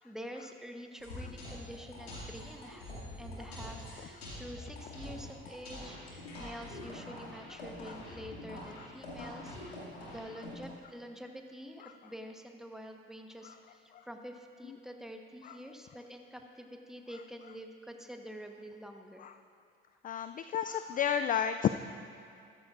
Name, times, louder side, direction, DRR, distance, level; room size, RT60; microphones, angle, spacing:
voice 1, 0.0-2.9 3.2-19.3, equal, ahead, 3 dB, 1.2 m, -47 dB
sound 1, 1.0-10.7, left 1 dB, 90° left, 2.4 m, -45 dB
voice 2, 20.0-21.7, left 8 dB, 30° left, 10 dB, 0.3 m, -30 dB
14.5 x 13.5 x 2.6 m, 2.5 s
hypercardioid pair, 55°, 30 cm